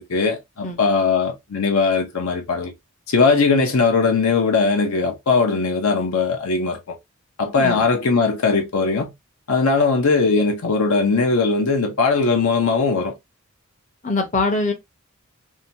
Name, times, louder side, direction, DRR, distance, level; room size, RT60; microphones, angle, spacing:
voice 1, 0.0-2.7 3.1-7.0 7.4-9.1 9.5-13.1, left 4 dB, 70° left, 0.6 m, -19 dB
voice 2, 14.0-14.7, left 3 dB, 35° left, 0.7 m, -22 dB
2.7 x 2.2 x 2.7 m
head